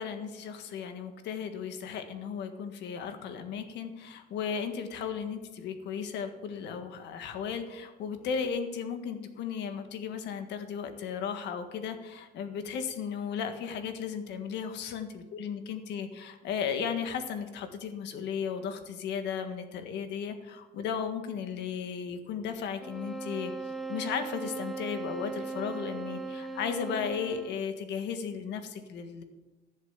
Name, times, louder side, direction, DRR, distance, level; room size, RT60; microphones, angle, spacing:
voice 1, 0.0-23.5 23.9-29.2, left 7 dB, 80° left, 8 dB, 1.6 m, -35 dB
sound 1, 22.8-27.7, right 3 dB, ahead, 0.8 m, -38 dB
14.5 x 7.5 x 7.2 m, 1.2 s
cardioid pair, 175°, 18 cm